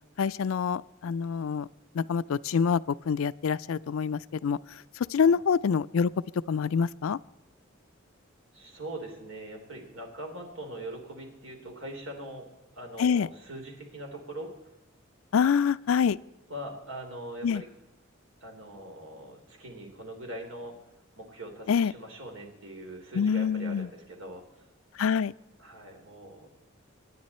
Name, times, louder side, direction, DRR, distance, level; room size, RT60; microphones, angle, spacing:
voice 1, 0.2-1.7 1.9-4.6 5.0-6.1 6.5-7.2 13.0-13.3 15.3-16.2 17.4-17.6 21.7-21.9 23.1-23.9 25.0-25.3, left 6 dB, 85° left, 18 dB, 0.4 m, -26 dB
voice 2, 8.5-12.5 12.7-14.5 16.5-17.7 18.4-20.8 21.2-24.4 25.6-26.5, right 1 dB, 80° right, 3 dB, 3.4 m, -42 dB
25.0 x 9.6 x 4.3 m, 1.1 s
head